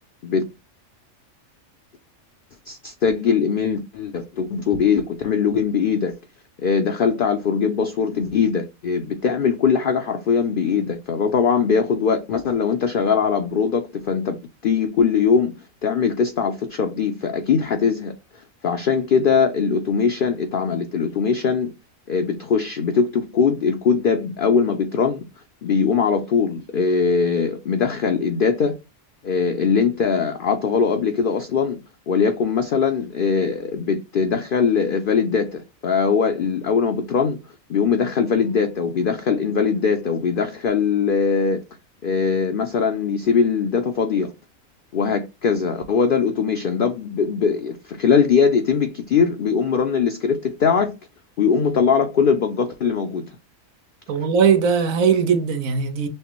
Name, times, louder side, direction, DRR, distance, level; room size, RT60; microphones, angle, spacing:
voice 1, 2.7-6.2 6.6-15.5 15.8-21.7 22.1-25.2 25.6-28.8 29.2-31.8 32.1-37.4 37.7-41.6 42.0-44.3 44.9-50.9 51.4-53.3, left 6 dB, 55° left, 0.6 m, -21 dB
voice 2, 54.1-56.1, right 6 dB, 85° right, 1.2 m, -19 dB
6.3 x 2.1 x 3.0 m
omnidirectional pair, 1.4 m